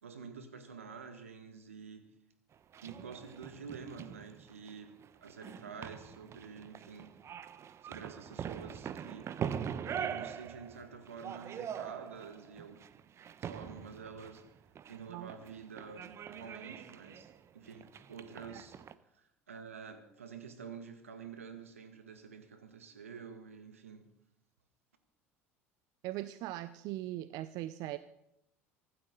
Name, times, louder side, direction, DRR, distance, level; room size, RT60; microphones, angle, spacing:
voice 1, 0.0-2.1 2.8-7.1 7.8-9.3 9.8-12.8 13.4-14.4 14.9-18.8 19.1-24.1, right 6 dB, 85° right, 8 dB, 2.0 m, -48 dB
sound 1, 2.5-18.9, right 8 dB, 40° right, 1.0 m, -43 dB
voice 2, 26.0-28.0, right 15 dB, 60° right, 14 dB, 0.8 m, -40 dB
25.0 x 12.5 x 4.0 m, 0.80 s
hypercardioid pair, 70°, 7 cm